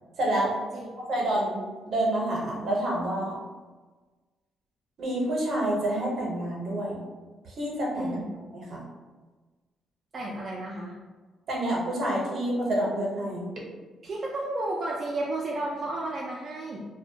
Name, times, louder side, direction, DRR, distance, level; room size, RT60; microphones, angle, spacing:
voice 1, 0.2-0.5 1.0-3.3 5.0-7.0 7.4-8.2 8.5-8.8 11.5-13.5, right 1 dB, 60° right, -3 dB, 0.7 m, -28 dB
voice 2, 7.9-8.3 10.1-10.9 14.0-16.9, right 2 dB, 40° right, -4 dB, 0.3 m, -32 dB
2.2 x 2.1 x 2.7 m, 1.3 s
cardioid pair, 90°, 0 cm